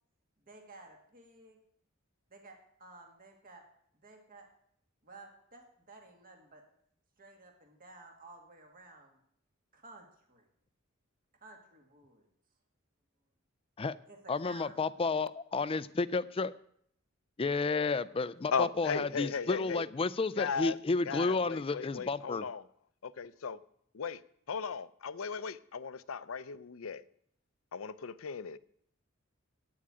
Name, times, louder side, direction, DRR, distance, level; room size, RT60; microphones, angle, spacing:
voice 1, 0.5-1.6 2.3-3.6 4.0-4.5 5.0-6.6 7.2-9.2 9.7-10.5 11.4-12.2 14.1-14.8, right 2 dB, 45° right, 2.0 m, -54 dB
voice 2, 14.3-16.5 17.4-22.4, left 3 dB, 25° left, 0.4 m, -31 dB
voice 3, 18.5-19.9 20.3-20.8 21.0-22.6 23.0-23.6 23.9-24.2 24.5-27.0 27.7-28.6, left 5 dB, 80° left, 0.6 m, -36 dB
8.7 x 8.5 x 8.8 m
head